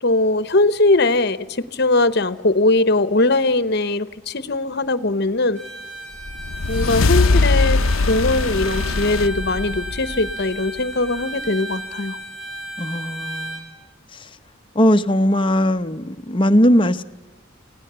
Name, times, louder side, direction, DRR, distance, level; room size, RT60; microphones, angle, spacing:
voice 1, 0.0-5.6 6.7-12.2, left 2 dB, 55° left, 14 dB, 1.0 m, -20 dB
Bowed string instrument, 5.5-13.7, right 1 dB, 70° right, 5.7 m, -34 dB
sound 1, 6.2-10.8, left 3 dB, 75° left, 0.6 m, -21 dB
voice 2, 12.8-13.7 14.1-14.3 14.7-17.0, equal, 25° left, 8 dB, 0.8 m, -19 dB
28.0 x 17.5 x 6.8 m, 1.2 s
head